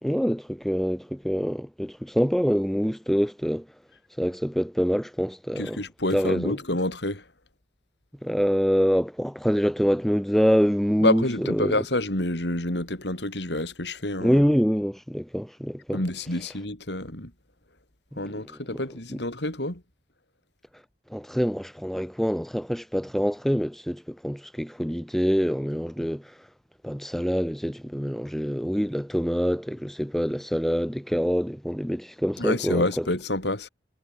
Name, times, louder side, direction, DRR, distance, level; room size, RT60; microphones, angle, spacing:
voice 1, 0.0-3.6 4.2-5.8 6.1-6.6 8.2-11.7 14.2-16.0 18.1-18.2 18.7-18.8 19.1-19.2 21.1-26.2 26.8-33.1, equal, ahead, 1.8 m, -25 dB
voice 2, 5.6-7.2 11.0-14.4 15.9-17.3 18.2-19.8 32.4-33.7, left 1 dB, 70° left, 5.2 m, -28 dB
head